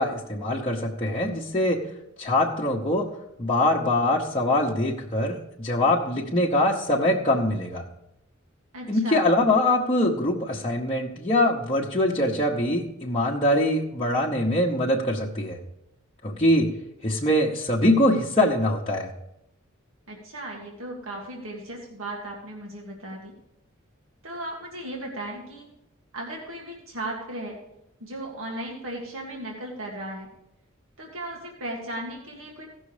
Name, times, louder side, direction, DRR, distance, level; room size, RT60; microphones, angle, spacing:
voice 1, 0.0-1.8 2.2-3.1 3.4-7.8 8.9-15.6 16.2-16.7 17.0-19.1, left 1 dB, 25° left, -5 dB, 0.9 m, -23 dB
voice 2, 8.7-9.2 20.1-23.3 24.2-25.7 26.1-27.6 28.0-30.3 31.0-32.6, right 1 dB, 85° right, -1 dB, 1.9 m, -36 dB
16.0 x 6.2 x 4.9 m, 0.84 s
head